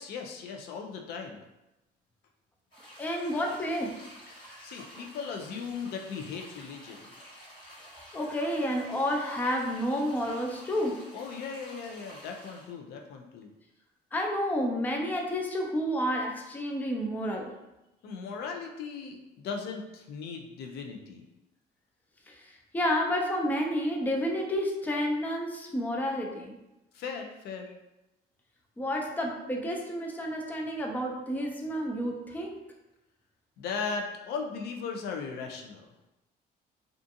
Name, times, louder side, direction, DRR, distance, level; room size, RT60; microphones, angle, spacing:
voice 1, 0.0-1.4 4.6-7.1 11.1-13.5 18.0-21.2 26.9-27.7 33.6-35.9, left 5 dB, 70° left, 3 dB, 0.4 m, -38 dB
sound 1, 2.7-12.7, equal, 30° left, 1.2 m, -50 dB
voice 2, 3.0-4.0 4.5-4.7 8.1-11.0 14.1-17.5 22.3-22.4 22.7-26.6 28.8-32.6, equal, 10° left, 0 dB, 0.4 m, -30 dB
2.4 x 2.4 x 2.6 m, 0.95 s
cardioid pair, 110°, 17 cm